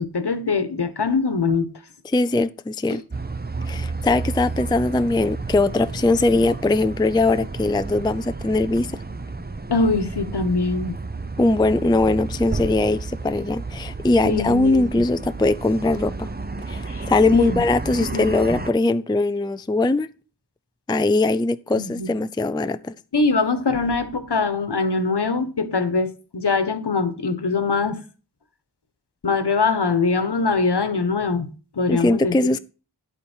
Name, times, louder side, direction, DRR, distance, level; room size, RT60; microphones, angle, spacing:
voice 1, 0.0-1.7 9.7-11.0 14.2-15.0 16.9-17.1 17.3-17.6 18.1-18.6 21.7-22.1 23.1-28.0 29.2-32.3, left 4 dB, 60° left, 1.3 m, -23 dB
voice 2, 2.0-3.0 3.7-8.9 11.4-16.3 16.7-20.1 20.9-23.0 31.9-32.6, left 2 dB, 10° left, 0.4 m, -21 dB
sound 1, 3.1-18.7, right 3 dB, 20° right, 0.7 m, -32 dB
9.8 x 8.4 x 4.5 m
wide cardioid pair, 55°, 44 cm